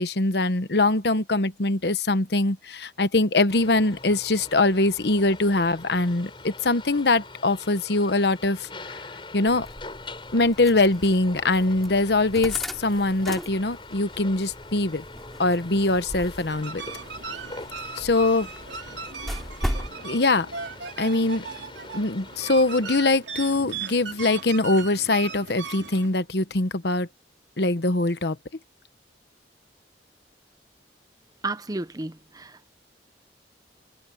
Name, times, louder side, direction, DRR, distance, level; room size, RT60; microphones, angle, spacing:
voice 1, 0.0-8.7 9.3-9.7 10.3-15.0 15.4-16.8 18.0-18.5 20.0-20.5 21.0-21.4 21.9-27.1 27.6-28.4, left 2 dB, 65° left, 1.1 m, -22 dB
sound 1, 3.5-23.3, left 3 dB, 30° left, 7.0 m, -44 dB
sound 2, 9.5-19.9, equal, ahead, 2.7 m, -38 dB
sound 3, 16.5-26.1, right 5 dB, 85° right, 3.2 m, -38 dB
voice 2, 31.4-32.7, right 2 dB, 20° right, 0.8 m, -33 dB
head